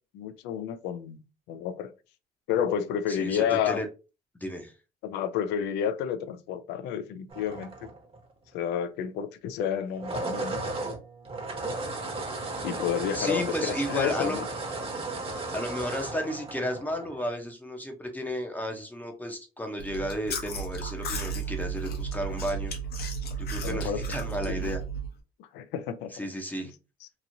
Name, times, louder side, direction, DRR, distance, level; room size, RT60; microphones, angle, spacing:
voice 1, 0.1-1.9 2.5-3.8 5.0-7.9 8.5-10.6 12.6-14.5 23.6-24.0 24.5-24.7 25.5-26.2 26.6-26.7, left 8 dB, 90° left, 0.4 m, -30 dB
voice 2, 3.1-3.9 4.4-4.7 13.1-14.4 15.5-22.7 23.4-24.8 26.1-26.7, equal, 10° left, 0.6 m, -33 dB
sound 1, 7.3-8.3 9.8-17.3, right 3 dB, 35° right, 0.8 m, -35 dB
Chewing mastication, 19.8-25.1, right 4 dB, 65° left, 0.9 m, -33 dB
2.9 x 2.6 x 2.6 m
cardioid pair, 110°, 17 cm